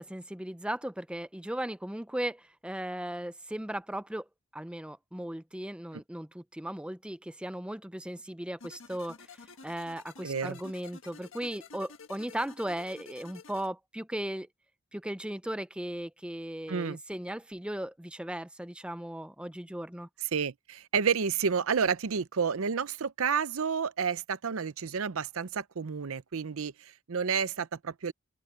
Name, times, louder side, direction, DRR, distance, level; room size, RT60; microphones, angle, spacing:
voice 1, 0.0-4.3 4.5-14.5 14.9-20.1, right 1 dB, 5° right, 0.5 m, -37 dB
sound 1, 8.6-13.7, left 4 dB, 65° left, 1.4 m, -50 dB
voice 2, 10.2-10.6 16.7-17.0 20.2-28.1, right 6 dB, 75° right, 0.6 m, -30 dB
open air
head